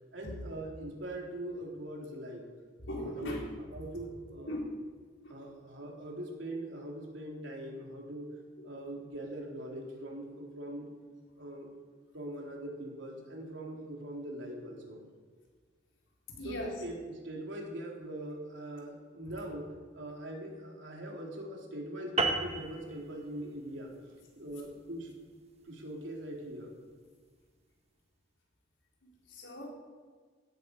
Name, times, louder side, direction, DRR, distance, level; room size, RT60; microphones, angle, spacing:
voice 1, 0.1-2.5 3.0-3.3 3.7-4.5 5.3-8.4 8.6-10.9 11.4-11.7 12.1-15.0 16.4-23.9 24.4-25.1 25.6-26.7, right 1 dB, 70° right, -1 dB, 3.6 m, -42 dB
voice 2, 2.9-3.5 4.5-4.7 5.2-5.3 16.4-16.7 19.3-19.4 29.3-29.7, equal, 80° left, -2 dB, 4.3 m, -38 dB
sound 1, 22.2-26.9, right 3 dB, 35° right, 1.4 m, -36 dB
18.0 x 13.5 x 5.4 m, 1.5 s
head